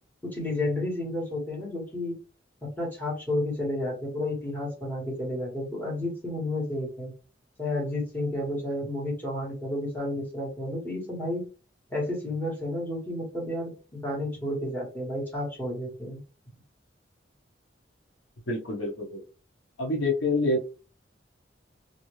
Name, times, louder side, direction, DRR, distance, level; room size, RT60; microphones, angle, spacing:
voice 1, 0.2-2.2 2.6-7.1 7.6-11.4 11.9-16.2, left 1 dB, 10° left, -4 dB, 1.4 m, -31 dB
voice 2, 18.5-19.2 19.8-20.7, left 2 dB, 80° left, 1 dB, 0.9 m, -27 dB
2.7 x 2.7 x 3.0 m, 0.34 s
head